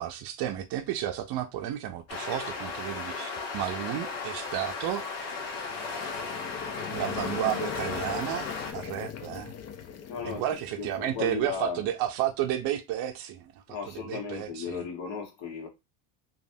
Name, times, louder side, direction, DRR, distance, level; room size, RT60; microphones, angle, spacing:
voice 1, 0.0-5.3 6.9-8.5 8.7-9.5 10.2-13.6 13.9-14.8, right 12 dB, 55° right, 0.5 m, -32 dB
sound 1, 2.1-8.7, left 4 dB, 80° left, 1.1 m, -35 dB
sound 2, 5.5-11.5, left 8 dB, 35° left, 0.4 m, -40 dB
voice 2, 10.1-11.9 13.7-15.7, left 6 dB, 65° left, 1.4 m, -36 dB
3.1 x 2.4 x 2.6 m
supercardioid pair, 105°, 47 cm